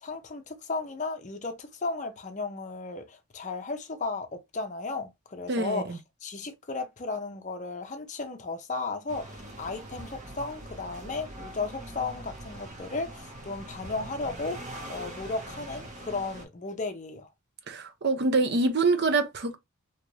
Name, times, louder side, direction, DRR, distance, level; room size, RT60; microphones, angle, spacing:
voice 1, 0.0-17.3, left 3 dB, 35° left, 0.5 m, -35 dB
voice 2, 5.5-5.8 17.7-19.6, right 3 dB, 50° right, 0.5 m, -25 dB
sound 1, 9.1-16.4, right 1 dB, 35° right, 0.9 m, -43 dB
2.9 x 2.5 x 3.0 m
head